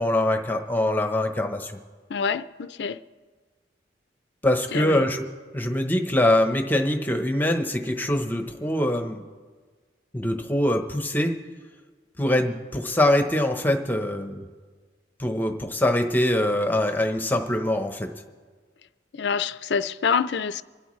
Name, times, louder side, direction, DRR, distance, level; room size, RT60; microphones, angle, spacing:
voice 1, 0.0-1.7 4.4-5.3 5.5-9.2 10.1-11.3 12.2-14.4 15.2-18.1, left 1 dB, 10° left, 0.9 m, -23 dB
voice 2, 2.1-3.0 4.7-5.1 19.1-20.6, left 6 dB, 75° left, 0.5 m, -26 dB
26.5 x 12.5 x 3.2 m
head